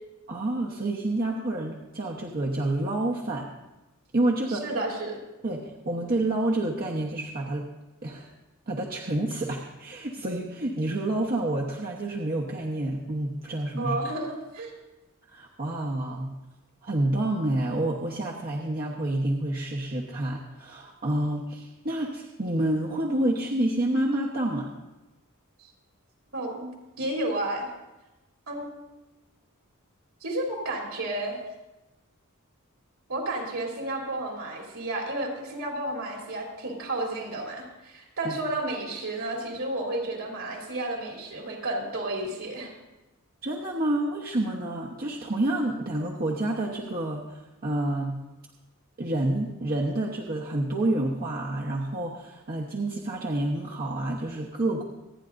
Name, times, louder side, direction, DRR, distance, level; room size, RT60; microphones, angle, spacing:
voice 1, 0.3-3.5 4.1-4.6 5.4-7.6 8.0-8.3 8.7-14.0 15.3-16.3 16.8-24.7 38.2-38.4 43.4-48.2 49.0-54.8, right 1 dB, 45° right, -2 dB, 1.1 m, -28 dB
voice 2, 4.5-5.2 13.8-14.7 26.3-26.7 27.0-27.7 28.5-28.7 30.2-31.4 33.1-42.7, right 1 dB, 65° right, -1 dB, 3.3 m, -32 dB
26.5 x 9.9 x 2.6 m, 1.0 s
head